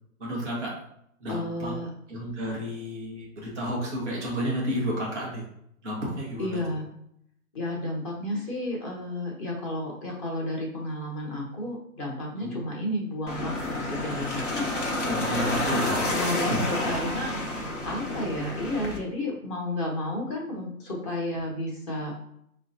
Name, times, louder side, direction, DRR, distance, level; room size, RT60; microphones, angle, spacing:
voice 1, 0.2-0.7 1.2-1.7 2.1-5.4 5.8-6.6 12.4-12.6 15.1-16.0 16.5-16.6, equal, 5° right, -10 dB, 0.4 m, -31 dB
voice 2, 1.3-1.9 6.4-6.8 7.5-15.0 15.3-15.8 16.1-22.1, left 1 dB, 20° left, -2 dB, 0.9 m, -32 dB
sound 1, 13.3-19.0, left 1 dB, 60° left, 1.0 m, -29 dB
5.8 x 2.2 x 2.7 m, 0.73 s
figure-of-eight pair, 130°, 43 cm